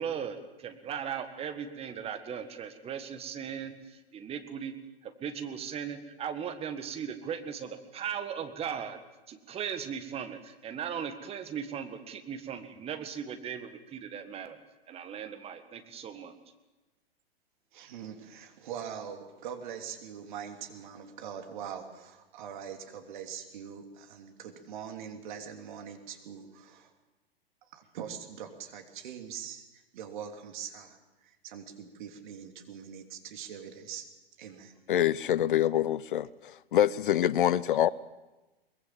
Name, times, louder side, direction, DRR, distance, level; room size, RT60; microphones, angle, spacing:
voice 1, 0.0-4.7 5.0-9.0 9.3-14.6 14.9-16.3, right 8 dB, 20° right, 1.7 m, -38 dB
voice 2, 17.7-26.9 27.7-31.0 31.2-34.1 34.4-34.7, right 8 dB, 50° right, 3.2 m, -43 dB
voice 3, 34.9-37.9, left 11 dB, 55° left, 0.7 m, -26 dB
22.5 x 21.5 x 7.5 m
figure-of-eight pair, 105°, 30 cm